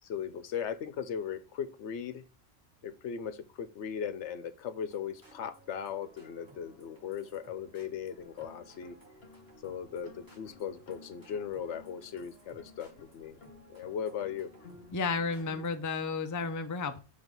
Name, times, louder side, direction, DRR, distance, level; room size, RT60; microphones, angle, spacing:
voice 1, 0.0-2.2 2.8-9.0 9.6-13.4 13.7-14.5, left 8 dB, 75° left, 12 dB, 1.0 m, -38 dB
sound 1, 4.9-15.8, right 2 dB, 15° right, 2.0 m, -58 dB
sound 2, 8.1-15.8, left 4 dB, 55° left, 1.2 m, -56 dB
voice 2, 14.9-17.0, left 4 dB, 25° left, 8 dB, 0.4 m, -32 dB
6.3 x 3.4 x 5.2 m, 0.34 s
omnidirectional pair, 1.2 m